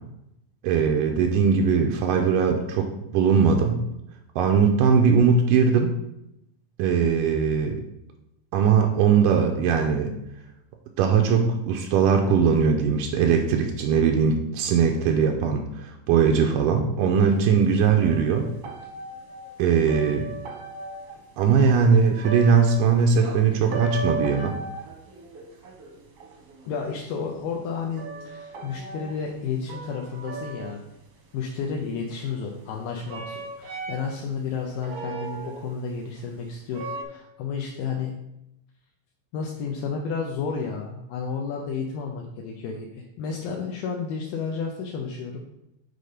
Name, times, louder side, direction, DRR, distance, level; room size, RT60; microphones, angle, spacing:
voice 1, 0.6-3.8 4.4-5.9 6.8-7.8 8.5-10.1 11.0-18.5 19.6-20.3 21.4-24.5, right 6 dB, 90° right, 3 dB, 1.9 m, -20 dB
sound 1, 17.6-17.7 18.0-21.3 21.7-23.4 23.7-27.2 27.9-31.0 32.1-32.7 33.1-34.2 34.7-35.8 36.2-36.3 36.7-37.0, right 3 dB, 70° right, 1.4 m, -36 dB
voice 2, 26.7-30.8 31.3-38.1 39.3-45.4, left 5 dB, 80° left, 0 dB, 2.3 m, -31 dB
6.6 x 4.1 x 5.0 m, 0.85 s
omnidirectional pair, 4.4 m